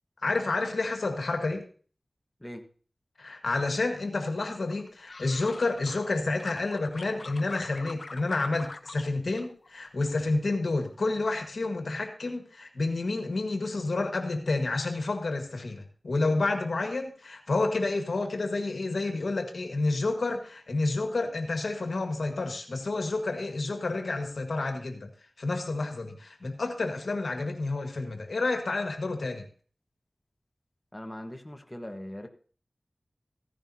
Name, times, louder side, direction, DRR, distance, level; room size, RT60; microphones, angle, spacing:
voice 1, 0.2-1.6 3.2-25.1 25.4-29.4, left 3 dB, 85° left, 5 dB, 1.6 m, -29 dB
sound 1, 4.7-6.1 6.4-9.1 9.4-10.1 10.5-10.9, left 3 dB, 70° left, 0.8 m, -44 dB
voice 2, 30.9-32.3, left 1 dB, 20° left, 5 dB, 1.3 m, -40 dB
15.5 x 10.5 x 2.8 m, 0.41 s
cardioid pair, 40°, 0 cm